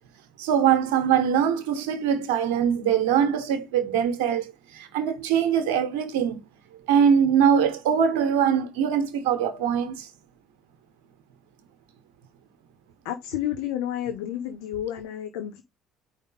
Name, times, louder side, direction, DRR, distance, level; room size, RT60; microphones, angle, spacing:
voice 1, 0.4-6.4 6.9-10.1, right 8 dB, 80° right, 1.2 m, -22 dB
voice 2, 13.0-15.6, left 11 dB, 80° left, 0.8 m, -30 dB
4.9 x 3.4 x 5.5 m
hypercardioid pair, 70°, 0 cm